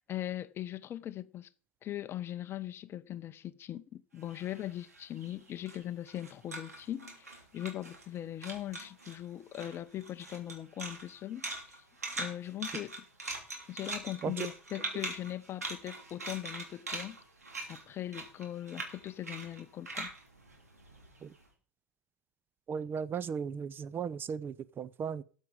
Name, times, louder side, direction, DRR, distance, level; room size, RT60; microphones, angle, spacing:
voice 1, 0.0-1.5 1.8-11.4 11.7-11.8 12.2-13.0 13.7-17.2 17.7-20.1, left 12 dB, 30° left, 0.6 m, -40 dB
sound 1, 4.2-8.2 8.4-9.2 9.5-21.4, right 2 dB, 80° right, 3.1 m, -42 dB
voice 2, 22.7-25.2, right 7 dB, 25° right, 0.6 m, -36 dB
13.0 x 7.4 x 5.3 m
figure-of-eight pair, 85°, 8 cm